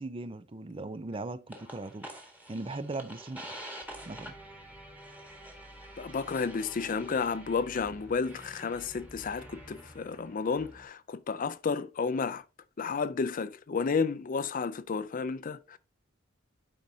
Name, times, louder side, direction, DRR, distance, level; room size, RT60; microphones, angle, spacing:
voice 1, 0.0-2.1 2.5-3.7 4.1-4.3, right 2 dB, 25° right, 0.5 m, -39 dB
sound 1, 1.5-10.8, right 1 dB, 10° right, 1.5 m, -47 dB
voice 2, 6.0-12.4 12.8-15.8, left 5 dB, 40° left, 0.4 m, -32 dB
11.5 x 4.8 x 2.7 m
head